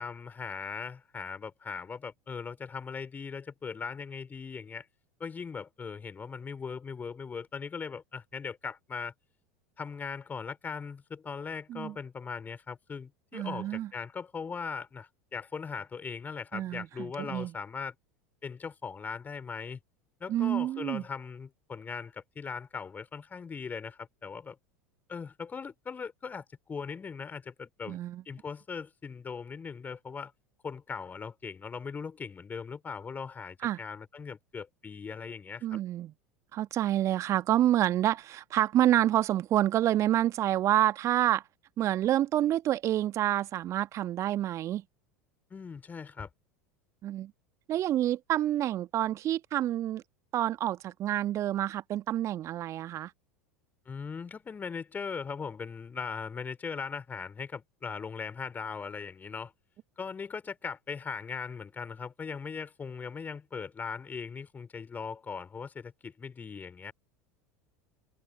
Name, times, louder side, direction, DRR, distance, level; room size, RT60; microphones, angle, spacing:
voice 1, 0.0-4.9 5.2-9.1 9.8-18.0 18.4-19.8 20.2-24.6 25.1-28.0 28.3-30.3 30.6-35.8 45.5-46.3 53.9-59.5 60.0-66.9, left 5 dB, 20° left, 3.5 m, -39 dB
voice 2, 13.3-13.9 16.5-17.5 20.3-21.0 27.9-28.2 33.6-33.8 35.6-36.1 36.5-41.4 41.8-44.8 47.0-47.3 47.7-50.0 50.3-53.1, right 12 dB, 35° right, 1.6 m, -28 dB
figure-of-eight pair, 75°, 8 cm